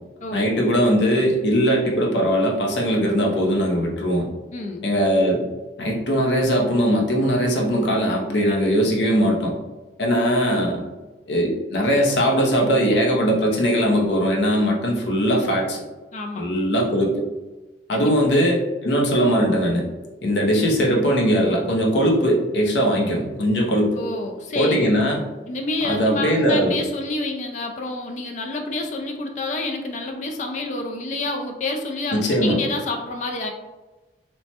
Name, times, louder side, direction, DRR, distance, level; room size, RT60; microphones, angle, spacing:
voice 1, 0.3-4.3 4.8-5.4 5.8-9.5 10.0-10.8 11.3-15.8 16.4-17.2 17.9-19.9 20.2-24.0 24.5-25.3 25.8-26.8 32.1-32.6, equal, 75° left, -1 dB, 0.6 m, -20 dB
voice 2, 4.5-4.9 16.1-16.5 17.9-18.1 24.0-24.9 25.5-33.5, left 2 dB, 40° left, 3 dB, 0.3 m, -28 dB
3.1 x 2.1 x 2.8 m, 1.1 s
head